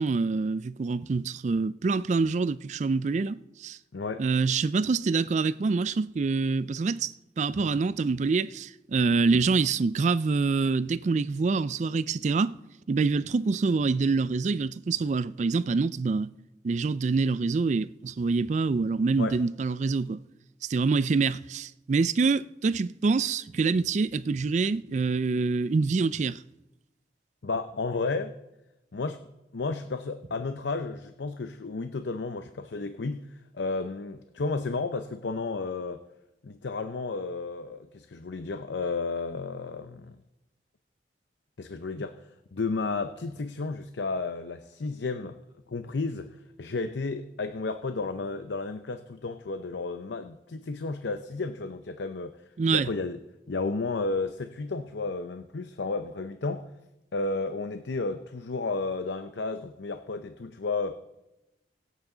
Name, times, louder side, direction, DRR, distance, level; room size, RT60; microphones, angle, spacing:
voice 1, 0.0-3.8 4.2-12.5 12.9-16.3 16.6-20.2 20.7-26.4 52.6-52.9, right 4 dB, 40° right, 0.3 m, -26 dB
voice 2, 3.9-4.2 19.2-19.4 27.4-28.4 28.9-29.2 29.5-36.0 36.4-40.2 41.6-45.4 45.7-52.4 52.7-53.2 53.5-56.7 57.1-60.9, left 3 dB, 80° left, 0.6 m, -32 dB
24.0 x 8.3 x 3.9 m
head